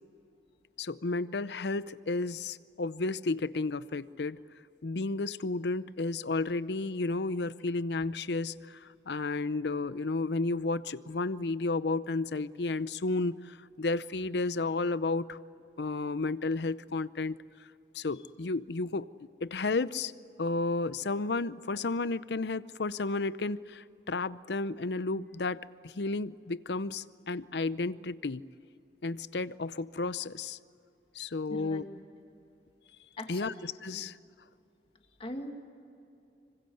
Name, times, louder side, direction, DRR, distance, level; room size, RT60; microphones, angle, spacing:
voice 1, 0.8-4.4 4.8-15.4 15.8-17.4 17.9-20.1 20.4-28.4 29.0-30.6 31.1-31.8 33.3-34.2, left 3 dB, 70° left, 16 dB, 0.7 m, -32 dB
voice 2, 31.5-32.0 33.2-33.5 33.9-34.1 35.2-35.5, left 1 dB, 35° left, 4 dB, 2.3 m, -41 dB
26.0 x 24.5 x 7.9 m, 2.6 s
head